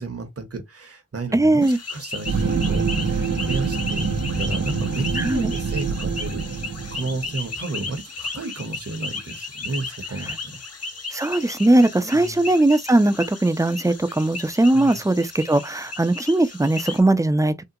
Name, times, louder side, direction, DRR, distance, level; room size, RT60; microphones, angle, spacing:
voice 1, 0.0-6.5 6.9-10.4 12.1-12.4 14.7-15.0, right 3 dB, 55° right, 1.0 m, -32 dB
voice 2, 1.3-1.8 5.2-5.5 11.1-17.5, right 2 dB, 10° right, 0.4 m, -19 dB
sound 1, 1.6-17.0, left 3 dB, 55° left, 0.7 m, -35 dB
sound 2, 2.2-7.4, right 5 dB, 80° right, 0.8 m, -26 dB
3.7 x 2.2 x 2.7 m
wide cardioid pair, 65°, 29 cm